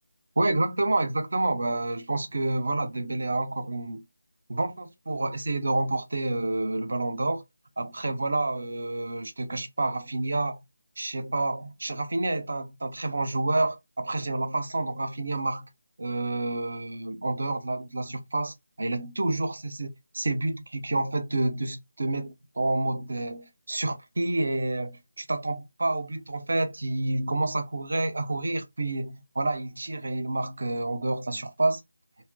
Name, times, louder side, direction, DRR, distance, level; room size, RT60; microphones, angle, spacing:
voice 1, 0.4-4.0 4.5-7.4 7.8-10.6 11.0-15.7 16.0-31.8, right 2 dB, 65° right, 0.7 m, -29 dB
2.6 x 2.2 x 3.5 m
figure-of-eight pair, 160°, 0 cm